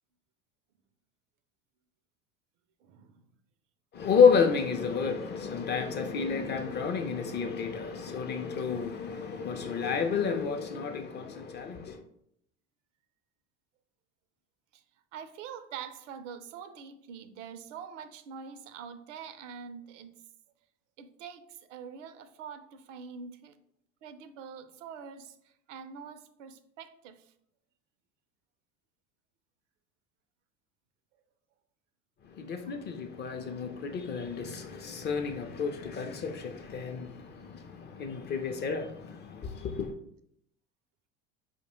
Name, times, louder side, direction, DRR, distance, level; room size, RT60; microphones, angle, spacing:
voice 1, 2.8-3.2 14.7-14.8 15.1-20.2 21.0-23.5 24.0-25.4 25.7-27.2, right 7 dB, 75° right, 0.5 m, -45 dB
voice 2, 3.9-12.0 32.4-39.9, left 6 dB, 30° left, 0.4 m, -30 dB
4.6 x 2.1 x 3.0 m
hypercardioid pair, 80°, 37 cm